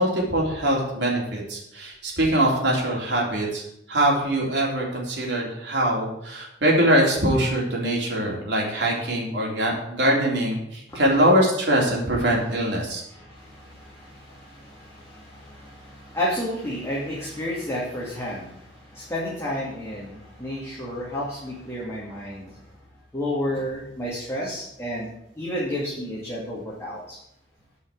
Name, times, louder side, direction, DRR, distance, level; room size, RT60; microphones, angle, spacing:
voice 1, 0.0-3.6 3.9-13.0, right 1 dB, 70° right, -2 dB, 3.5 m, -23 dB
voice 2, 13.1-22.6 23.1-25.1 25.3-27.2, left 1 dB, 15° left, -6 dB, 2.5 m, -31 dB
9.5 x 5.7 x 8.3 m, 0.77 s
head